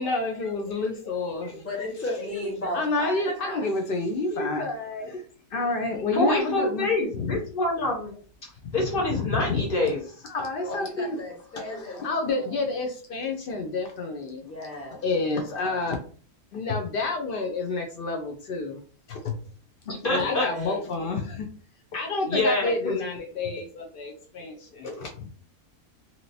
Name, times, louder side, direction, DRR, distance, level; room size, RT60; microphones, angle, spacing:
voice 1, 0.0-2.3 2.7-5.2 5.5-6.9 7.1-7.4 8.7-8.8 9.3-9.6 10.3-11.2 11.5-14.4 14.9-16.0 16.5-18.8 19.1-19.4 20.1-21.5 21.9-25.1, left 3 dB, 80° left, 0.5 m, -29 dB
voice 2, 1.5-3.7 10.6-12.5 14.4-15.0 15.6-15.8 20.0-20.9, left 1 dB, 10° left, 1.0 m, -36 dB
voice 3, 6.1-8.2 8.4-10.0 19.9-20.5 22.3-23.0, left 2 dB, 45° left, 0.9 m, -26 dB
2.9 x 2.8 x 2.6 m
omnidirectional pair, 1.6 m